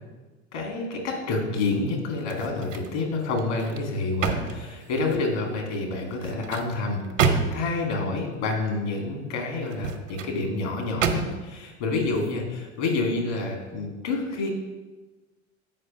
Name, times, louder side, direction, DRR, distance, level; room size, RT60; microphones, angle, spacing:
voice 1, 0.5-14.5, left 3 dB, 65° left, 1 dB, 2.4 m, -28 dB
sound 1, 2.2-3.0 3.4-5.3 6.1-7.8 9.6-10.4 11.0-11.6 12.1-12.3, right 5 dB, 80° right, 0.9 m, -29 dB
7.6 x 5.2 x 5.4 m, 1.2 s
figure-of-eight pair, 75°, 37 cm